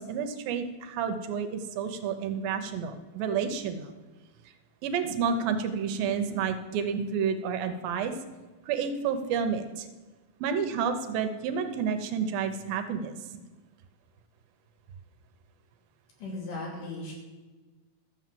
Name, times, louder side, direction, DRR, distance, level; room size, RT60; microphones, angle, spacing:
voice 1, 0.0-3.9 4.8-8.1 8.7-9.9 10.4-13.1, right 6 dB, 80° right, 8 dB, 2.6 m, -30 dB
voice 2, 16.2-17.1, left 2 dB, 60° left, -2 dB, 4.3 m, -37 dB
13.0 x 7.1 x 7.6 m, 1.2 s
omnidirectional pair, 4.2 m